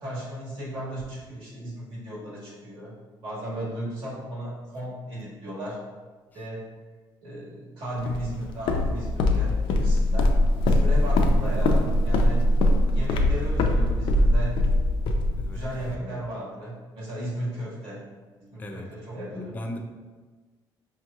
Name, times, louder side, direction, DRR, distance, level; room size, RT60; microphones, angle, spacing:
voice 1, 0.0-2.9 3.2-5.8 6.3-6.6 7.2-10.3 10.6-12.4 12.9-14.6 15.5-18.0 18.4-19.5, right 1 dB, 70° right, -6 dB, 1.4 m, -35 dB
Walk footsteps, 8.1-15.9, left 1 dB, 85° left, 0.4 m, -22 dB
voice 2, 19.3-19.8, left 1 dB, 20° left, 3 dB, 0.3 m, -37 dB
5.2 x 2.9 x 2.3 m, 1.4 s
cardioid pair, 170°, 9 cm